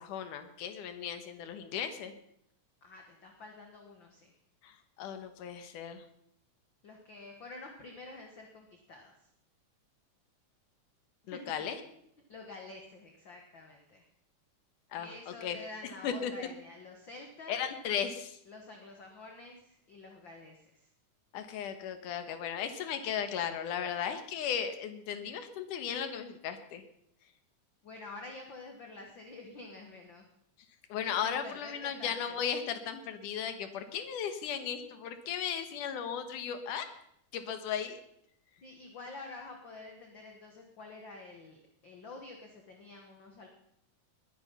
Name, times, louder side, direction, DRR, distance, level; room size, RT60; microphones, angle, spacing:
voice 1, 0.0-2.1 4.6-6.0 11.3-11.8 14.9-15.6 16.0-16.3 17.5-18.4 21.3-26.8 30.9-36.9 37.3-38.0, left 8 dB, 80° left, 9 dB, 2.9 m, -36 dB
voice 2, 2.8-4.4 6.8-9.3 11.3-11.7 12.3-14.1 14.9-17.6 18.5-20.9 27.8-30.3 31.2-32.4 38.6-43.5, left 3 dB, 45° left, 2 dB, 1.9 m, -48 dB
21.0 x 9.7 x 5.6 m, 0.73 s
omnidirectional pair, 3.6 m